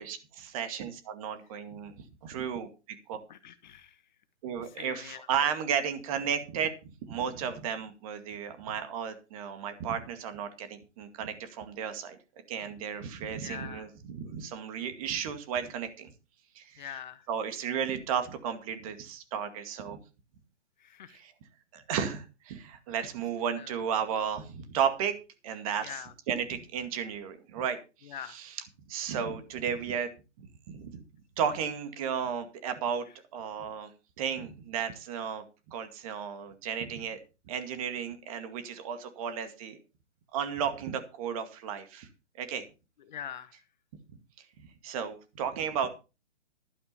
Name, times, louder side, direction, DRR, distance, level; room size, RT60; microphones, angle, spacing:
voice 1, 0.0-2.7 3.1-3.2 4.4-12.2 12.5-16.1 16.6-16.8 17.3-20.0 21.2-21.3 21.7-25.1 25.4-25.9 26.3-28.1 28.9-30.1 30.4-31.0 31.4-33.1 33.3-33.9 34.2-37.2 37.5-39.8 40.3-42.1 42.4-42.6 44.8-45.9, right 7 dB, 30° right, 9 dB, 2.1 m, -34 dB
voice 2, 3.3-4.0 4.6-5.5 13.4-13.9 16.8-17.3 20.8-21.2 23.5-23.8 25.8-26.1 28.0-28.4 43.0-43.6, left 9 dB, 40° left, 13 dB, 1.2 m, -44 dB
12.0 x 11.0 x 4.3 m, 0.30 s
figure-of-eight pair, 140°, 35 cm